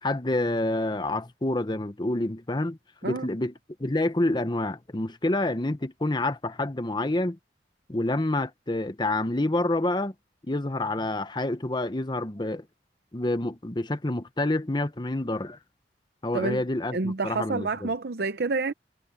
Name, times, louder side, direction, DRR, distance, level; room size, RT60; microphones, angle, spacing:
voice 1, 0.0-3.5 3.8-7.4 7.9-10.1 10.4-12.7 13.1-15.6 16.2-17.9, left 2 dB, 25° left, 0.9 m, -28 dB
voice 2, 16.9-18.7, right 3 dB, 60° right, 0.7 m, -28 dB
head